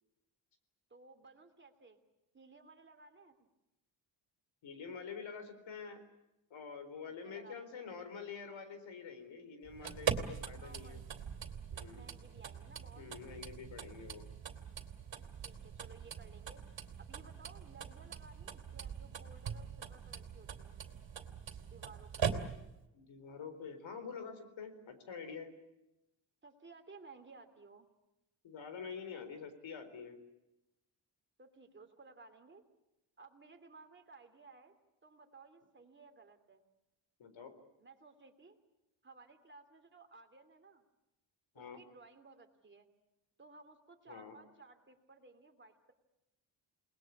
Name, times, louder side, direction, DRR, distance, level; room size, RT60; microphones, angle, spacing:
voice 1, 0.9-2.0 2.3-3.5 7.1-7.9 10.5-11.1 11.9-13.1 15.4-20.8 21.7-22.3 26.4-27.9 31.4-32.6 33.2-34.8 35.0-36.6 37.8-38.6 39.0-40.8 41.5-42.9 43.4-45.9, right 3 dB, 25° right, 5 dB, 2.9 m, -58 dB
voice 2, 4.6-6.0 6.5-11.0 11.7-12.1 13.0-14.3 22.9-25.5 28.4-30.2 37.2-37.5 41.5-41.8 44.1-44.3, left 6 dB, 90° left, 10 dB, 4.3 m, -47 dB
sound 1, 9.7-22.8, right 7 dB, 75° right, 2.8 m, -42 dB
29.0 x 20.0 x 8.5 m, 0.94 s
wide cardioid pair, 160°, 45 cm